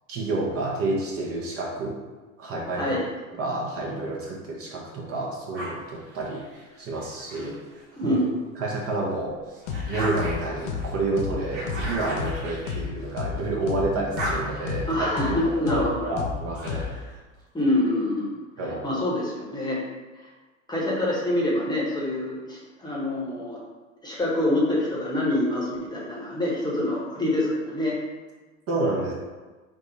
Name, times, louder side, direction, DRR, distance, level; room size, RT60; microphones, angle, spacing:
voice 1, 0.1-1.9 2.4-3.0 3.4-6.4 6.8-7.6 8.0-8.2 8.6-9.6 9.9-16.9 18.6-19.0 28.7-29.1, right 2 dB, 35° right, -3 dB, 0.8 m, -29 dB
sound 1, 5.5-8.2 8.7-13.6 13.9-17.2, right 1 dB, 60° right, 1.2 m, -37 dB
voice 2, 8.0-8.3 14.9-16.1 17.5-18.3 18.8-19.8 20.2-20.3 20.7-23.6 24.0-28.0, left 1 dB, 10° left, -5 dB, 0.9 m, -26 dB
sound 2, 9.7-9.8 10.2-10.3 10.7-10.8 11.2-11.3 11.7-11.8 12.2-12.3 12.7-12.8 13.2-13.3 13.7-13.8 14.2-14.3 14.7-14.8 15.2-15.3 15.7-15.8 16.2-16.3 16.7-16.8, left 7 dB, 80° left, 0.6 m, -30 dB
3.6 x 2.0 x 3.8 m, 1.3 s
hypercardioid pair, 95°, 39 cm